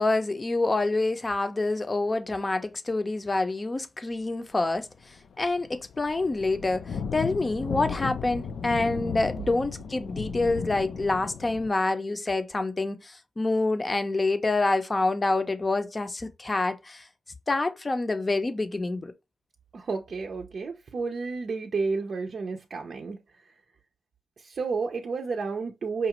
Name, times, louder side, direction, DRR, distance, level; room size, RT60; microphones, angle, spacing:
voice 1, 0.0-4.9 5.4-6.8 7.1-17.0 17.5-19.1, left 2 dB, 30° left, 0.6 m, -27 dB
sound 1, 5.0-5.2 5.4-11.7, left 6 dB, 75° left, 0.4 m, -35 dB
voice 2, 19.7-23.2 24.4-26.1, right 4 dB, 60° right, 0.5 m, -31 dB
5.0 x 2.3 x 2.9 m
cardioid pair, 65°, 0 cm